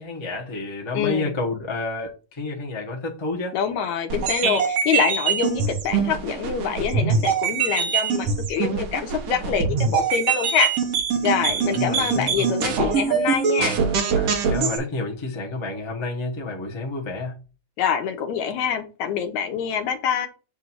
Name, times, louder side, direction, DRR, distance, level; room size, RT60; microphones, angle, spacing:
voice 1, 0.0-3.6 11.4-12.5 14.1-17.4, left 3 dB, 30° left, 0.4 m, -30 dB
voice 2, 0.9-1.4 3.5-10.7 11.2-13.8 17.8-20.3, left 7 dB, 75° left, 2.3 m, -25 dB
sound 1, 4.1-14.8, right 6 dB, 60° right, 2.0 m, -23 dB
8.0 x 2.8 x 6.1 m
omnidirectional pair, 3.4 m